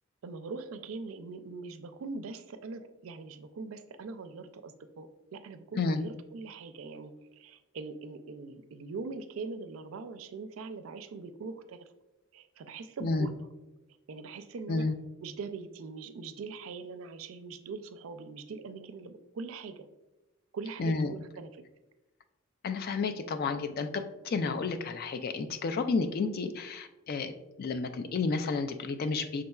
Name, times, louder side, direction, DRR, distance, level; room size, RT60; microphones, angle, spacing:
voice 1, 0.2-11.9 12.3-13.4 14.1-14.9 15.2-19.9 20.5-21.5, right 4 dB, 75° right, 10 dB, 0.4 m, -42 dB
voice 2, 20.8-21.1 22.6-29.4, left 4 dB, 45° left, 8 dB, 0.3 m, -31 dB
5.3 x 3.7 x 2.3 m, 1.1 s
head